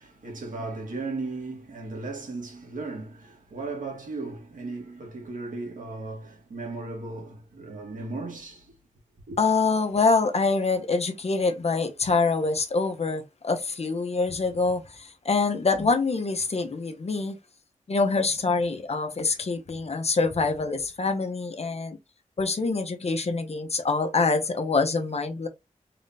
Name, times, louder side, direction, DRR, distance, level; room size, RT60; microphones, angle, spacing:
voice 1, 0.0-8.8 9.3-9.4, right 3 dB, 85° right, 1.8 m, -36 dB
voice 2, 9.4-17.4 17.9-22.0 22.4-25.5, left 4 dB, 55° left, 0.9 m, -25 dB
3.9 x 3.5 x 2.7 m
wide cardioid pair, 95°, 13 cm